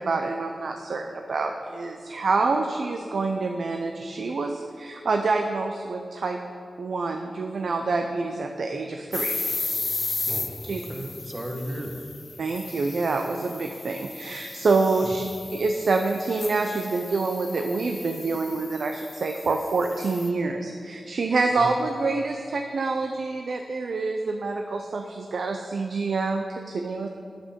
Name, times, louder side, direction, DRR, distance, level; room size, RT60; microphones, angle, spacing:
voice 1, 0.0-6.4 6.8-9.4 10.7-10.8 12.4-15.2 15.5-27.1, right 3 dB, 75° right, 4 dB, 0.5 m, -27 dB
sound 1, 9.1-20.3, left 3 dB, 45° left, 0.6 m, -35 dB
voice 2, 10.3-12.2 21.6-21.7, equal, 25° right, 3 dB, 1.2 m, -35 dB
9.6 x 7.7 x 5.2 m, 2.3 s
wide cardioid pair, 75°, 0 cm